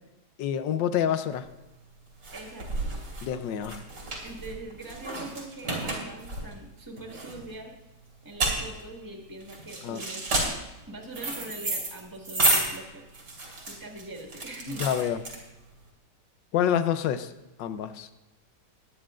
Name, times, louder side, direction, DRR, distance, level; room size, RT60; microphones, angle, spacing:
voice 1, 0.4-1.5 3.2-3.8 9.8-10.0 14.8-15.2 16.5-17.3 17.6-18.1, left 9 dB, 80° left, 11 dB, 1.4 m, -27 dB
sound 1, 1.4-15.8, right 2 dB, 80° right, 3.5 m, -31 dB
voice 2, 2.3-2.9 4.2-7.7 8.2-13.0 13.6-15.2, right 2 dB, 10° right, 0 dB, 1.6 m, -43 dB
20.5 x 9.5 x 2.5 m, 1.0 s
omnidirectional pair, 1.9 m